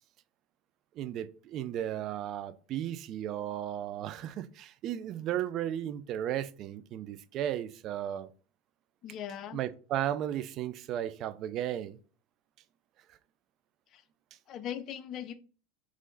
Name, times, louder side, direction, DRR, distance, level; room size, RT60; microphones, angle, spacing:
voice 1, 1.0-8.3 9.5-12.0, right 11 dB, 50° right, 0.4 m, -35 dB
voice 2, 9.0-9.6 13.9-14.0 14.5-15.3, left 9 dB, 45° left, 0.5 m, -39 dB
3.8 x 3.1 x 3.9 m
hypercardioid pair, 85°, 0 cm